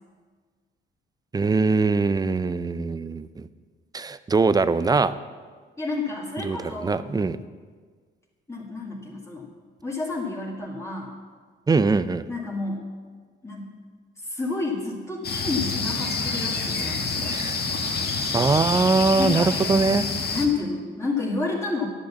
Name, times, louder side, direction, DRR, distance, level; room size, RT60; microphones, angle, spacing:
voice 1, 1.3-3.5 3.9-5.1 6.4-7.4 11.7-12.2 17.3-17.6 18.3-20.0, right 4 dB, 20° right, 14 dB, 0.4 m, -22 dB
voice 2, 5.8-7.0 8.5-9.5 9.8-11.1 12.3-12.8 13.4-13.7 14.2-17.3 19.2-19.8 20.3-21.9, left 3 dB, 15° left, -3 dB, 1.9 m, -30 dB
sound 1, 15.2-20.5, left 4 dB, 55° left, 1.5 m, -27 dB
10.5 x 6.4 x 7.1 m, 1.5 s
cardioid pair, 90°, 20 cm